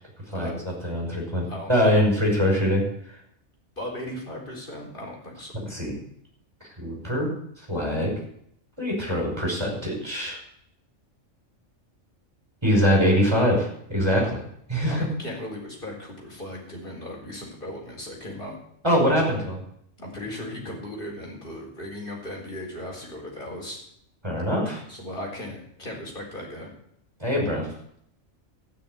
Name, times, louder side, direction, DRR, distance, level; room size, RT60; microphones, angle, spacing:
voice 1, 0.3-2.8 5.5-5.9 6.8-7.3 7.7-8.1 8.8-10.4 12.6-14.4 14.7-15.1 18.8-19.6 24.2-24.8 27.2-27.7, equal, 20° right, -2 dB, 5.5 m, -23 dB
voice 2, 1.5-2.0 3.8-5.5 14.9-18.6 20.0-23.8 24.5-24.6 24.9-26.7, left 1 dB, 40° left, -1 dB, 4.2 m, -37 dB
14.5 x 6.5 x 9.3 m, 0.70 s
omnidirectional pair, 1.3 m